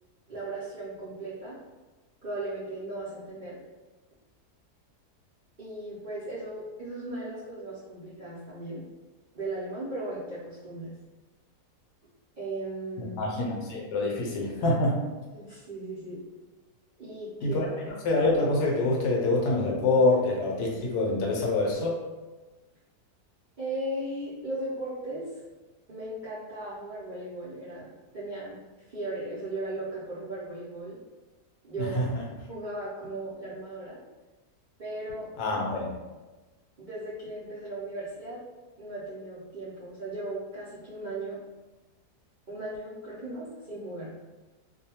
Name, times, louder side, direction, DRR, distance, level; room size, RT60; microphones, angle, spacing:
voice 1, 0.3-1.6 2.2-3.6 5.6-8.9 9.3-10.9 12.4-13.2 15.3-16.2 17.0-17.7 23.6-25.3 25.9-28.6 28.9-31.0 31.6-32.2 32.5-34.0 34.8-35.3 36.8-38.4 38.8-41.4 42.5-44.1, right 2 dB, 70° right, -10 dB, 0.4 m, -37 dB
voice 2, 13.2-15.0 17.4-17.7 18.0-22.0 31.8-32.2 35.4-35.9, left 2 dB, 75° left, -2 dB, 1.2 m, -26 dB
2.7 x 2.2 x 2.8 m, 1.2 s
omnidirectional pair, 1.8 m